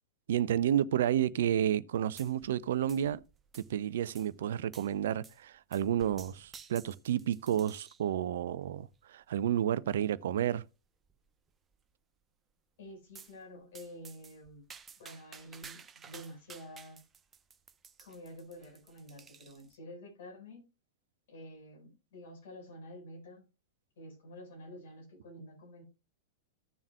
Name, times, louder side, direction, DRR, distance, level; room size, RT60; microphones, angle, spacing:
voice 1, 0.3-3.2 3.5-10.6, right 10 dB, 55° right, 0.5 m, -31 dB
sound 1, 2.2-2.6 2.9-3.8 4.1-4.3 4.7-4.9 5.2-5.4 5.7-8.1 8.7-9.0 9.7-9.8 10.1-10.2 10.5-10.6 11.0-11.5 13.1-13.4 13.7-19.8, right 6 dB, 20° right, 0.7 m, -54 dB
voice 2, 12.8-14.6 15.0-17.0 18.0-20.7 21.3-23.4 24.0-25.8, left 1 dB, 55° left, 4.7 m, -49 dB
15.0 x 7.1 x 2.2 m
figure-of-eight pair, 95°, 0 cm